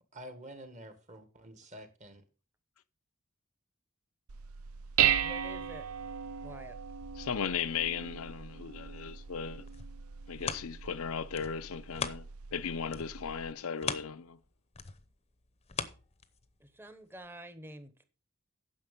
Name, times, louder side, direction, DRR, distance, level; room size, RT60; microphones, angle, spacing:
voice 1, 0.1-2.2, right 1 dB, 35° right, 1.6 m, -48 dB
Dishes pots and pans, 4.3-13.5, right 9 dB, 85° right, 0.6 m, -36 dB
voice 2, 5.2-5.9 6.4-6.8 16.6-18.0, right 1 dB, 10° right, 1.0 m, -48 dB
voice 3, 7.2-9.6 10.3-12.3 12.5-14.4, left 7 dB, 75° left, 0.5 m, -36 dB
sound 1, 9.4-12.6 12.9-16.7 17.2-17.3, left 6 dB, 30° left, 0.7 m, -41 dB
9.9 x 6.6 x 5.3 m
head